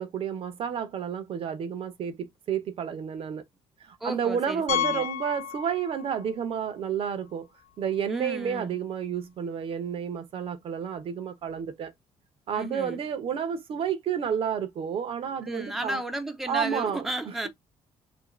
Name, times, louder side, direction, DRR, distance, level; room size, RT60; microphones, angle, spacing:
voice 1, 0.0-3.4 3.8-7.5 7.8-11.9 12.5-16.0 16.5-17.0, right 8 dB, 55° right, 0.6 m, -30 dB
voice 2, 4.0-5.1 8.1-8.8 12.5-13.0 15.4-17.5, right 1 dB, ahead, 0.5 m, -34 dB
Piano, 4.7-6.3 6.6-6.7 7.3-7.4 7.6-7.7 9.8-9.9, left 11 dB, 70° left, 0.6 m, -31 dB
2.8 x 2.5 x 2.8 m
cardioid pair, 115°, 12 cm